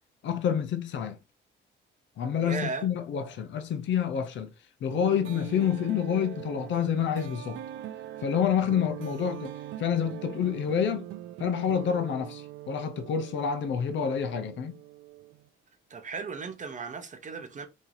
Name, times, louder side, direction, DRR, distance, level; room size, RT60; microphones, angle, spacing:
voice 1, 0.2-1.2 2.2-4.5 4.8-7.6 8.2-9.5 9.8-11.1 11.4-14.7, left 8 dB, 70° left, 0.7 m, -28 dB
voice 2, 2.4-2.9 15.9-17.7, right 5 dB, 40° right, 0.8 m, -36 dB
sound 1, 4.9-15.5, right 13 dB, 80° right, 0.4 m, -42 dB
3.0 x 2.7 x 3.9 m
cardioid pair, 90°, 20 cm